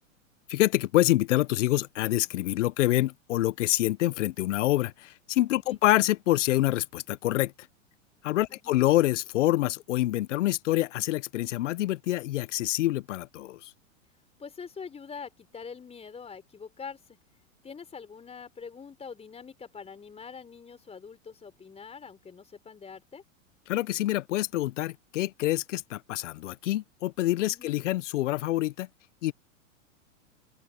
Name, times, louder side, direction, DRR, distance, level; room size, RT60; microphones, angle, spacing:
voice 1, 0.5-7.5 8.2-13.7 23.7-28.9 29.2-29.3, left 16 dB, 65° left, 1.2 m, -26 dB
voice 2, 14.4-17.0 17.6-23.2 27.5-27.8, left 6 dB, 15° left, 4.2 m, -44 dB
open air
hypercardioid pair, 110°, 40 cm